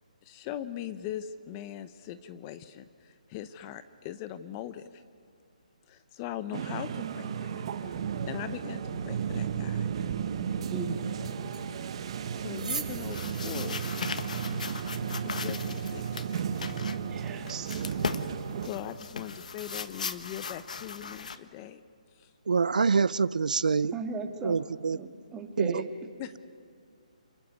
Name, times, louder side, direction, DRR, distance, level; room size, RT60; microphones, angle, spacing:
voice 1, 0.2-5.0 5.9-9.9 12.3-14.1 15.2-16.5 18.6-21.8 22.1-22.3 26.2-26.4, left 11 dB, 25° left, 13 dB, 0.7 m, -41 dB
sound 1, 6.5-18.7, right 7 dB, 45° right, 1.6 m, -34 dB
voice 2, 10.7-11.2 17.1-17.8 23.9-24.6 24.9-25.9, right 4 dB, 10° right, 4 dB, 2.1 m, -37 dB
sound 2, 11.3-16.1, right 5 dB, 65° right, 3.1 m, -44 dB
sound 3, 13.1-21.4, left 5 dB, 65° left, 1.4 m, -38 dB
voice 3, 22.5-23.9 24.4-25.0 25.6-25.8, right 5 dB, 80° right, 20 dB, 0.6 m, -25 dB
28.5 x 19.5 x 9.5 m, 2.3 s
hypercardioid pair, 160°, 4 cm